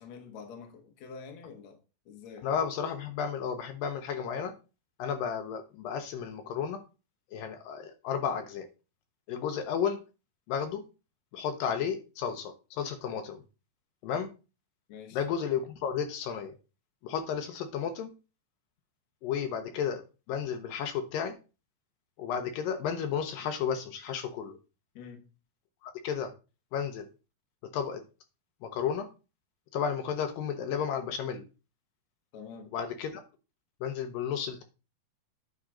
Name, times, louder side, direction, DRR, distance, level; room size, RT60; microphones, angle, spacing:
voice 1, 0.0-1.8 2.1-2.5 14.9-15.2 24.9-25.2 32.3-32.7, left 6 dB, 60° left, 3 dB, 2.2 m, -46 dB
voice 2, 2.4-4.5 5.0-6.8 7.3-8.7 9.3-10.0 10.5-10.8 11.3-13.4 14.0-14.3 15.1-16.5 17.0-18.1 19.2-20.0 20.3-21.4 22.2-24.6 25.8-26.3 26.7-27.1 27.7-28.0 28.6-29.1 29.7-31.4 32.7-33.2 33.8-34.6, left 7 dB, 75° left, 7 dB, 2.3 m, -32 dB
9.7 x 4.3 x 3.7 m, 0.31 s
omnidirectional pair, 4.3 m